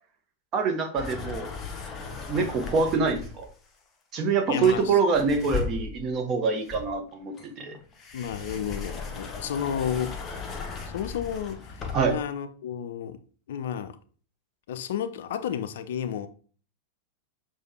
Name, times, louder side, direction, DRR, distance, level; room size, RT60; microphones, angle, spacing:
voice 1, 0.5-1.5 2.3-3.4 4.1-7.8 11.9-12.1, right 4 dB, 30° right, 0.8 m, -25 dB
sound 1, 1.0-3.5 4.6-6.2 6.7-12.3, left 5 dB, 25° left, 0.6 m, -37 dB
voice 2, 4.5-5.0 8.1-10.2 10.9-13.2 13.5-14.0 14.7-16.3, left 8 dB, 55° left, 0.3 m, -32 dB
6.3 x 2.3 x 2.9 m
figure-of-eight pair, 90°, 0 cm